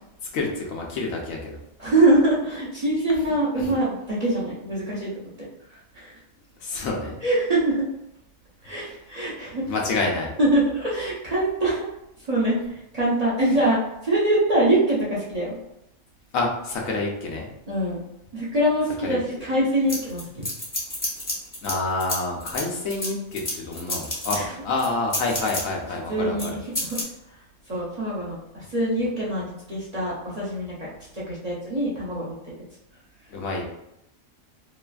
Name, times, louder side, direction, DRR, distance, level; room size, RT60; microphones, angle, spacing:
voice 1, 0.3-1.6 3.6-3.7 6.6-7.2 8.7-9.0 9.6-10.3 13.4-13.5 16.3-17.5 19.0-19.2 21.6-26.6 33.3-33.6, left 3 dB, 85° left, 0 dB, 1.1 m, -28 dB
voice 2, 1.8-5.1 5.9-6.1 7.2-7.9 8.6-9.7 10.4-11.9 12.3-12.6 12.9-13.8 14.0-15.5 17.7-18.0 18.3-20.2 24.3-24.5 26.1-26.6 26.8-27.0 27.7-30.9 31.1-32.4, right 1 dB, 40° right, -8 dB, 0.6 m, -23 dB
sound 1, 19.9-21.7 22.0-24.4 24.8-25.6 26.4-26.5 26.7-27.0, left 1 dB, 20° left, 0.6 m, -29 dB
3.1 x 2.4 x 2.3 m, 0.83 s
omnidirectional pair, 1.4 m